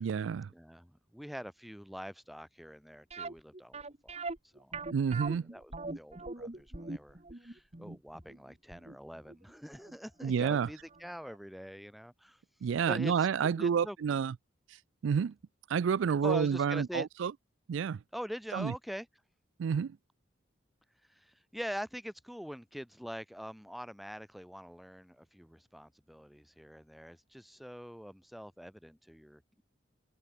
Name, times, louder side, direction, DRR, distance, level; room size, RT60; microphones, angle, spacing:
voice 1, 0.0-0.5 4.9-5.5 10.2-10.7 12.6-14.3 15.0-15.3 15.7-17.3 17.7-18.0 18.5-18.7 19.6-20.0, right 7 dB, 75° right, 0.4 m, -29 dB
voice 2, 0.5-4.3 4.5-4.9 5.5-12.4 12.9-13.1 13.4-14.0 16.2-17.1 18.1-19.1 21.1-29.6, equal, ahead, 2.7 m, -44 dB
sound 1, 3.1-10.0 10.2-10.3 10.9-11.0 11.3-11.4, right 3 dB, 35° right, 1.6 m, -41 dB
open air
head